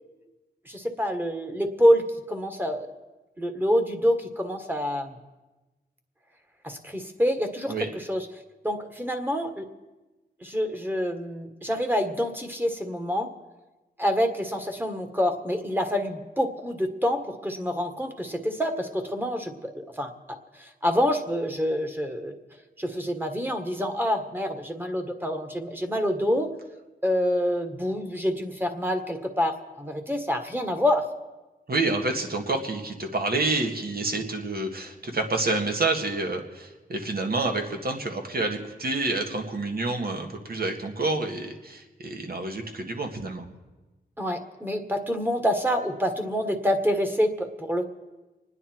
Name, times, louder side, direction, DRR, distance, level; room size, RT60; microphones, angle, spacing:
voice 1, 0.6-2.9 3.4-5.2 6.6-8.3 8.6-9.7 10.4-13.3 14.0-22.4 22.8-26.5 27.0-31.1 44.2-47.8, equal, 10° right, 5 dB, 1.7 m, -27 dB
voice 2, 31.7-43.5, right 2 dB, 60° right, 3 dB, 1.9 m, -28 dB
26.5 x 9.8 x 4.6 m, 1.1 s
wide cardioid pair, 80°, 18 cm